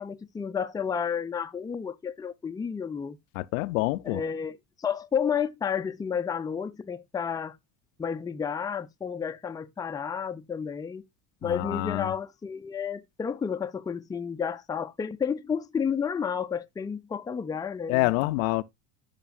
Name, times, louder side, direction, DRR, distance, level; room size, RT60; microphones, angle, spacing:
voice 1, 0.0-3.2 4.0-7.6 8.0-11.0 11.4-18.3, left 7 dB, 10° left, 0.4 m, -31 dB
voice 2, 3.4-4.2 11.4-12.1 17.9-18.6, left 21 dB, 75° left, 0.5 m, -27 dB
11.0 x 5.2 x 2.3 m
hypercardioid pair, 80°, 40 cm